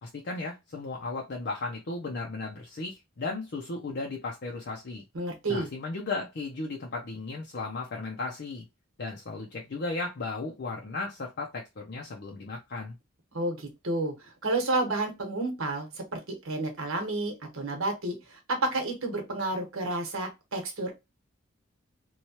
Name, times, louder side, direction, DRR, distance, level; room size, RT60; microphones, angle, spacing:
voice 1, 0.0-5.0 5.5-8.6 9.0-12.9, left 3 dB, 55° left, 0.5 m, -35 dB
voice 2, 5.1-5.7 13.3-21.0, right 2 dB, 85° right, 1.1 m, -31 dB
3.1 x 2.2 x 2.8 m
head